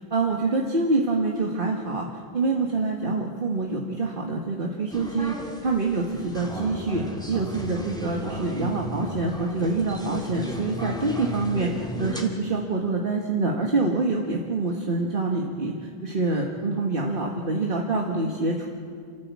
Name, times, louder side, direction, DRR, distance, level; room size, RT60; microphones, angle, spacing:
voice 1, 0.0-2.1 2.3-18.7, right 3 dB, 30° right, 0 dB, 1.5 m, -26 dB
sound 1, 4.9-12.2, equal, ahead, 2.3 m, -34 dB
29.0 x 14.0 x 8.4 m, 2.3 s
omnidirectional pair, 2.3 m